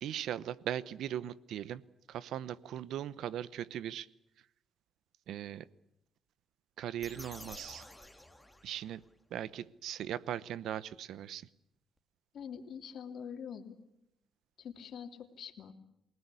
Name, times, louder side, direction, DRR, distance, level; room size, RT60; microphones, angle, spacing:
voice 1, 0.0-1.8 2.1-4.1 5.3-5.7 6.8-7.9 8.6-9.0 9.3-11.5, right 10 dB, 80° right, 18 dB, 0.9 m, -39 dB
sound 1, 7.0-9.1, left 1 dB, 5° left, 2.4 m, -51 dB
voice 2, 12.3-13.8 14.6-15.7, left 7 dB, 65° left, 6 dB, 2.9 m, -45 dB
27.5 x 19.0 x 8.4 m, 0.83 s
cardioid pair, 90°, 0 cm